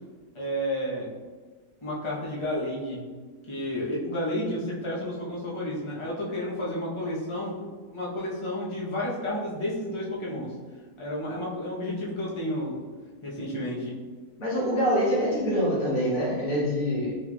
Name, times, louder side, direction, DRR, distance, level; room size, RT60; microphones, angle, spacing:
voice 1, 0.3-1.1 1.8-3.0 3.5-10.5 11.0-12.8 13.2-14.0, left 1 dB, 35° left, -5 dB, 0.4 m, -31 dB
voice 2, 14.4-17.2, equal, 60° left, -6 dB, 1.5 m, -25 dB
4.4 x 3.0 x 2.3 m, 1.5 s
omnidirectional pair, 1.7 m